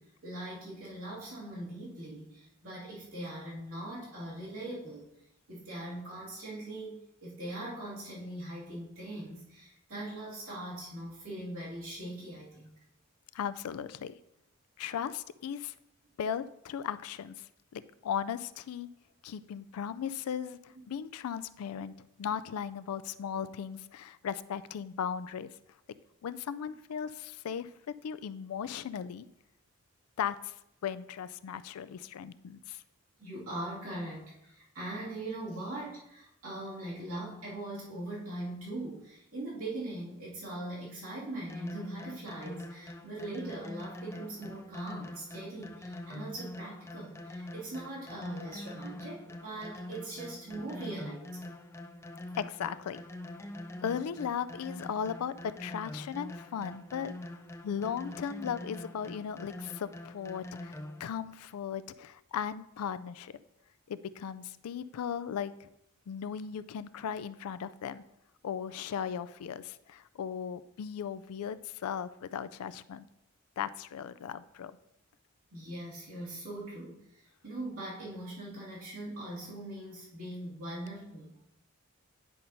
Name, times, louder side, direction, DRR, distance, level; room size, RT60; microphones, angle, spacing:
voice 1, 0.0-5.1 5.5-12.7 33.2-51.5 75.5-81.4, right 1 dB, 80° right, -8 dB, 2.3 m, -41 dB
voice 2, 13.3-14.1 14.8-15.7 16.2-18.9 19.2-25.5 26.2-27.7 28.0-29.3 30.2-30.5 30.8-32.8 52.4-53.0 53.8-57.1 57.6-63.4 63.9-65.7 66.1-68.0 68.4-73.1 73.6-74.7, left 8 dB, 85° left, 15 dB, 0.3 m, -37 dB
sound 1, 41.5-61.1, left 1 dB, 10° left, 0.3 m, -44 dB
10.0 x 5.6 x 2.6 m, 0.82 s
head